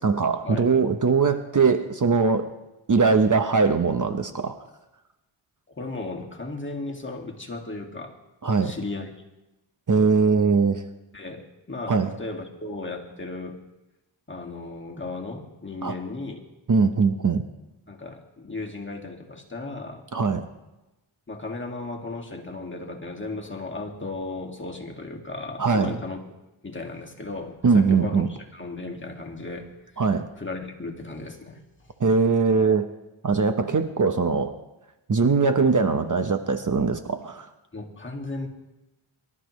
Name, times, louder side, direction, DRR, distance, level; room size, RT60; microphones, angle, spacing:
voice 1, 0.0-2.5 2.9-4.6 8.4-8.7 9.9-10.8 11.9-12.1 15.8-15.9 16.7-17.4 20.1-20.4 25.6-26.0 27.6-28.3 30.0-30.3 32.0-32.9 33.2-34.5 35.1-37.5, right 4 dB, 40° right, 7 dB, 0.9 m, -21 dB
voice 2, 5.7-8.2 8.6-9.1 11.1-13.6 14.3-16.4 17.9-20.1 21.3-26.2 26.6-29.7 30.4-32.0 37.7-38.5, left 2 dB, 25° left, 0 dB, 2.1 m, -35 dB
23.5 x 12.5 x 3.2 m, 1.0 s
wide cardioid pair, 85°, 49 cm